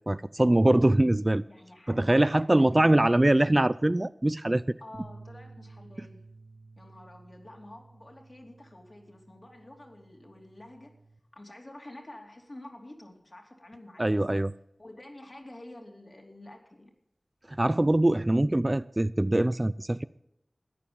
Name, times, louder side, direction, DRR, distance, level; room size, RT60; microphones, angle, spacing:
voice 1, 0.1-1.4 1.9-4.6 14.0-14.5 17.5-20.0, right 1 dB, 30° right, 0.4 m, -23 dB
voice 2, 1.5-3.5 4.8-6.2 6.8-10.9 11.3-14.2 14.8-16.9, left 1 dB, 50° left, 3.0 m, -49 dB
sound 1, 4.9-11.2, right 3 dB, 70° right, 2.3 m, -52 dB
14.0 x 9.6 x 7.1 m
wide cardioid pair, 45°, 0 cm